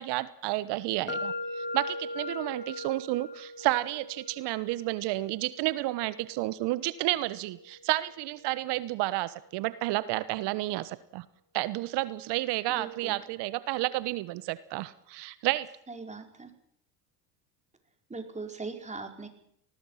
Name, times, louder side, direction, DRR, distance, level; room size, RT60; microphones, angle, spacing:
voice 1, 0.0-1.3 1.7-11.2 11.5-15.7, right 18 dB, 55° right, 16 dB, 1.3 m, -31 dB
sound 1, 1.1-8.9, left 2 dB, 20° left, 3.0 m, -41 dB
voice 2, 12.7-13.2 15.9-16.5 18.1-19.3, right 3 dB, 15° right, 4 dB, 5.1 m, -40 dB
29.5 x 19.5 x 5.8 m, 0.70 s
hypercardioid pair, 75°, 48 cm